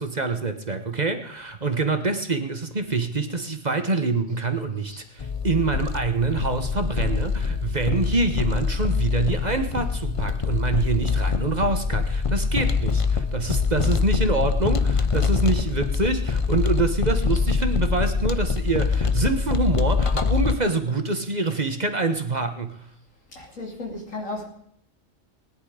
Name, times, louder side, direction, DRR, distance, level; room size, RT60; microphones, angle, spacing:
voice 1, 0.0-22.7, right 3 dB, 35° right, 7 dB, 1.3 m, -26 dB
sound 1, 5.2-20.5, left 5 dB, 30° left, 0.7 m, -24 dB
voice 2, 23.4-24.5, left 2 dB, 85° left, 1 dB, 3.5 m, -35 dB
20.0 x 10.5 x 5.0 m, 0.71 s
omnidirectional pair, 1.3 m